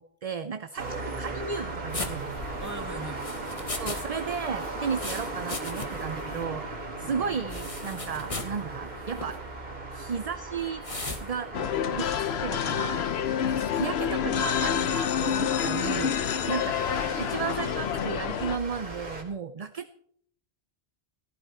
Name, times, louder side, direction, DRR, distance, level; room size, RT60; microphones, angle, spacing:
voice 1, 0.0-2.4 3.8-6.7 7.0-9.4 9.9-10.8 11.2-12.1 12.4-13.1 13.7-16.8 17.2-20.0, right 6 dB, 40° right, 10 dB, 0.6 m, -34 dB
sound 1, 0.8-19.2, right 2 dB, 70° right, 3.0 m, -38 dB
sound 2, 1.9-4.0 4.3-6.1 6.4-6.5 7.5-8.6 9.1-9.4 10.8-11.2, left 2 dB, 35° left, 1.7 m, -37 dB
voice 2, 2.6-3.7 7.0-7.4 12.0-12.3 13.4-14.0, right 2 dB, 15° right, 6 dB, 1.8 m, -43 dB
sound 3, 11.5-18.6, left 9 dB, 85° left, 1.0 m, -28 dB
14.5 x 14.5 x 4.3 m, 0.65 s
omnidirectional pair, 1.0 m